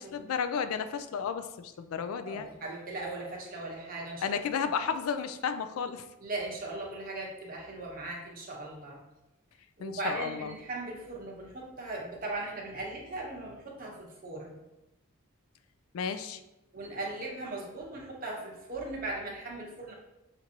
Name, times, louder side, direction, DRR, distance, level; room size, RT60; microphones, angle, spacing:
voice 1, 0.0-2.5 4.2-6.0 9.8-10.5 15.9-16.4, left 6 dB, 80° left, 10 dB, 0.3 m, -33 dB
voice 2, 2.2-4.4 6.2-9.0 9.8-14.6 16.7-19.9, right 2 dB, 40° right, -2 dB, 0.9 m, -38 dB
5.9 x 2.6 x 2.8 m, 0.94 s
head